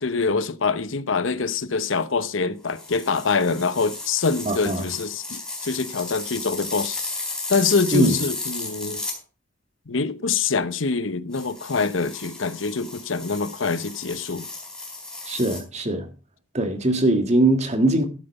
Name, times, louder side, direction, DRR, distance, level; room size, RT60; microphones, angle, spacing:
voice 1, 0.0-7.0 7.5-9.0 9.9-14.5, left 4 dB, 80° left, 1.0 m, -25 dB
sound 1, 2.7-9.2 11.3-15.6, left 2 dB, 5° left, 4.1 m, -34 dB
voice 2, 4.4-4.8 7.9-8.1 15.3-16.1 16.5-18.1, right 2 dB, 35° right, 1.8 m, -21 dB
13.0 x 8.1 x 5.3 m
head